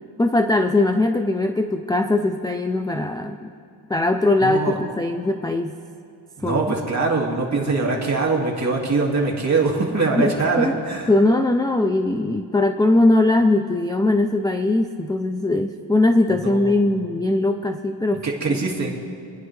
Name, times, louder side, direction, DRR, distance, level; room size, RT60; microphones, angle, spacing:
voice 1, 0.2-3.5 3.9-5.8 6.4-6.6 10.2-10.8 11.1-18.6, left 2 dB, 10° left, 6 dB, 0.3 m, -20 dB
voice 2, 4.4-4.7 6.4-11.1 16.4-16.7 18.2-19.0, right 3 dB, 35° right, -2 dB, 2.1 m, -22 dB
28.5 x 9.7 x 3.2 m, 2.4 s
wide cardioid pair, 130°, 49 cm